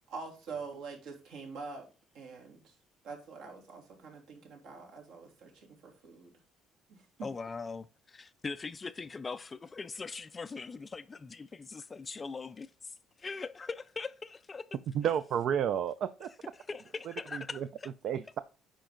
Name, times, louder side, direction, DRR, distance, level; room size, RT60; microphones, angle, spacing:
voice 1, 0.1-1.9 2.1-2.7 3.0-6.3 6.9-7.3, right 4 dB, 70° right, 3.0 m, -45 dB
voice 2, 7.2-14.7 16.5-17.9, left 4 dB, 20° left, 0.3 m, -41 dB
voice 3, 14.9-16.3 17.3-17.7 18.0-18.4, right 9 dB, 50° right, 0.4 m, -31 dB
9.1 x 5.2 x 3.8 m
cardioid pair, 170°, 0 cm